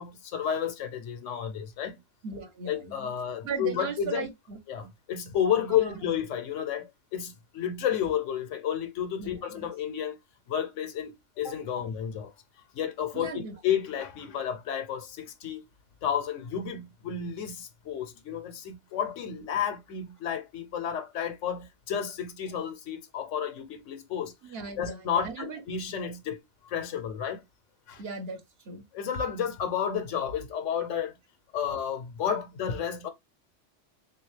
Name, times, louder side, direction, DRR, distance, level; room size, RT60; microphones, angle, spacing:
voice 1, 0.0-2.0 2.7-4.3 4.7-10.2 10.5-12.3 12.7-15.6 16.0-27.4 27.9-28.0 28.9-31.2 31.5-33.1, left 8 dB, 85° left, 1.1 m, -31 dB
voice 2, 2.2-3.1 3.4-4.6 5.7-6.0 9.2-9.7 13.1-13.6 24.4-25.6 28.0-28.8, right 4 dB, 60° right, 1.0 m, -37 dB
3.5 x 2.6 x 3.1 m
omnidirectional pair, 1.2 m